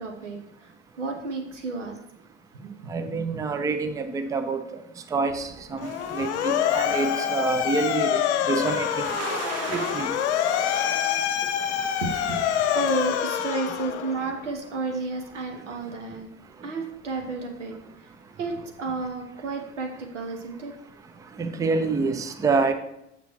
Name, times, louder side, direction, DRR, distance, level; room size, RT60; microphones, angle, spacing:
voice 1, 0.0-2.0 2.5-3.4 12.0-12.4 12.7-16.3 16.6-18.1 18.4-20.7, right 3 dB, 80° right, 3 dB, 0.9 m, -32 dB
voice 2, 2.9-4.6 5.1-8.2 8.5-9.1 9.7-10.2 21.4-22.7, right 4 dB, 10° right, 8 dB, 0.4 m, -27 dB
Motor vehicle (road) / Siren, 5.8-14.4, left 9 dB, 65° left, 0.6 m, -26 dB
sound 1, 5.8-13.0, right 4 dB, 40° right, 1.0 m, -40 dB
6.7 x 5.9 x 3.0 m, 0.82 s
figure-of-eight pair, 65°, 36 cm